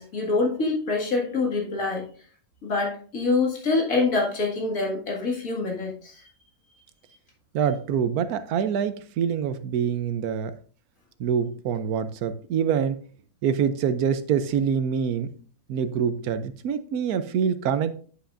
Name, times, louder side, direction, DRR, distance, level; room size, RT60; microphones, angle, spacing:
voice 1, 0.0-2.1 2.6-6.2, left 3 dB, 65° left, -2 dB, 2.4 m, -25 dB
voice 2, 7.5-10.5 11.2-13.0 13.4-15.3 15.7-18.0, right 7 dB, 85° right, 11 dB, 1.1 m, -25 dB
9.7 x 5.7 x 2.5 m, 0.44 s
omnidirectional pair, 1.6 m